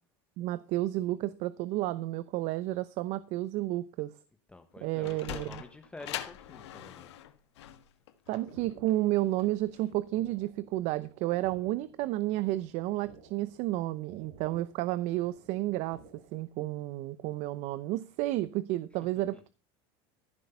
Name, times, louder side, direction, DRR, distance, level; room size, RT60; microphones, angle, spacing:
voice 1, 0.4-4.1 4.8-5.5 8.3-16.0 16.3-19.5, right 16 dB, 55° right, 0.7 m, -31 dB
voice 2, 4.5-7.2 19.1-19.4, left 2 dB, 10° left, 1.1 m, -48 dB
Sliding door, 4.7-9.9, left 12 dB, 90° left, 1.6 m, -43 dB
sound 1, 8.3-16.5, right 5 dB, 75° right, 3.9 m, -56 dB
14.5 x 6.4 x 5.7 m
supercardioid pair, 125°, 14 cm